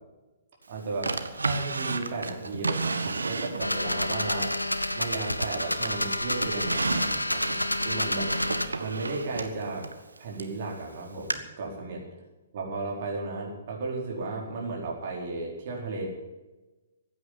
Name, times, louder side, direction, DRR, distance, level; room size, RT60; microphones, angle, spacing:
voice 1, 0.7-4.5 4.9-7.6 7.8-8.3 8.8-9.9 10.2-12.0 12.5-16.1, right 3 dB, 45° right, -1 dB, 4.5 m, -34 dB
Drawer open or close, 1.0-3.9 4.4-5.5 5.9-10.6 11.3-11.4, right 3 dB, 75° right, 1.2 m, -32 dB
sound 1, 3.6-8.7, left 1 dB, 85° left, 0.9 m, -29 dB
15.0 x 9.4 x 8.7 m, 1.1 s
figure-of-eight pair, 120°, 0 cm